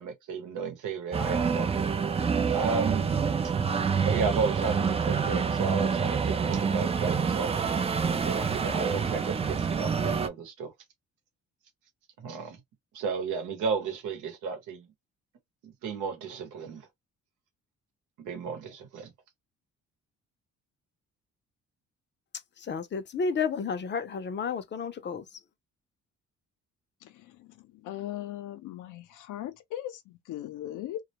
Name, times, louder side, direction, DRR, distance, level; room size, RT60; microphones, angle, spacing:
voice 1, 0.0-1.7 2.5-3.1 4.0-7.6 8.2-10.7 12.2-12.6 12.9-14.9 15.6-16.9 18.2-19.1, right 5 dB, 90° right, 0.9 m, -33 dB
sound 1, 1.1-10.3, right 6 dB, 20° right, 0.3 m, -27 dB
voice 2, 22.6-25.4, left 5 dB, 35° left, 0.5 m, -31 dB
voice 3, 27.0-31.0, left 13 dB, 85° left, 0.6 m, -39 dB
2.3 x 2.1 x 2.8 m
cardioid pair, 90°, 30 cm